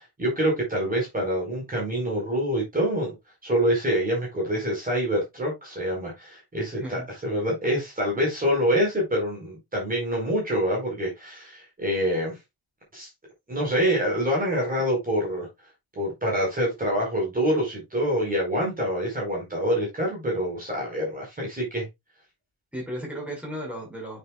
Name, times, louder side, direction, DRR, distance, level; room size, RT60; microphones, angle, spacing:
voice 1, 0.0-3.2 3.4-12.4 12.9-13.1 13.5-15.5 15.9-21.9, equal, 20° right, 4.5 m, -26 dB
voice 2, 6.6-7.1 14.8-14.9 22.7-24.2, equal, 5° right, 5.3 m, -35 dB
9.2 x 7.0 x 2.4 m
cardioid pair, 155°, 41 cm